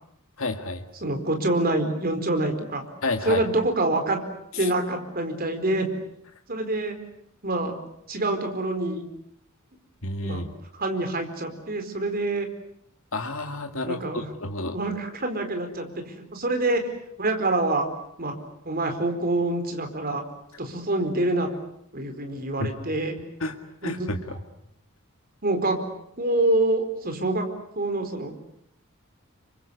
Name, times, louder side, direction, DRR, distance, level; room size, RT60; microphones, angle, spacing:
voice 1, 0.4-0.8 3.0-3.5 4.6-4.7 10.0-10.5 13.1-14.8 22.6-22.7 23.4-23.6 23.8-24.4, left 2 dB, 65° left, 4 dB, 2.1 m, -30 dB
voice 2, 1.0-2.8 3.2-4.2 4.6-5.9 6.5-6.9 7.4-7.7 8.1-9.0 10.2-10.4 10.7-12.5 13.9-14.3 14.7-15.9 16.2-16.9 17.2-17.9 18.2-18.3 18.6-20.2 20.6-21.5 21.9-23.1 23.8-24.4 25.4-25.8 26.2-27.4 27.8-28.3, right 2 dB, 45° right, 6 dB, 4.4 m, -26 dB
28.5 x 24.5 x 8.1 m, 0.71 s
head